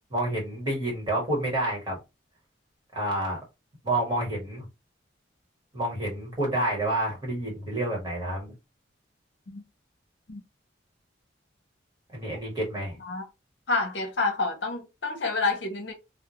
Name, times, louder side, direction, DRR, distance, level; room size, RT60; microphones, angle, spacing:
voice 1, 0.1-2.0 2.9-3.4 3.8-4.7 5.7-8.5 12.1-13.0, right 1 dB, 25° right, 1.2 m, -29 dB
voice 2, 13.7-15.9, left 3 dB, 65° left, 0.7 m, -28 dB
2.3 x 2.1 x 2.9 m
head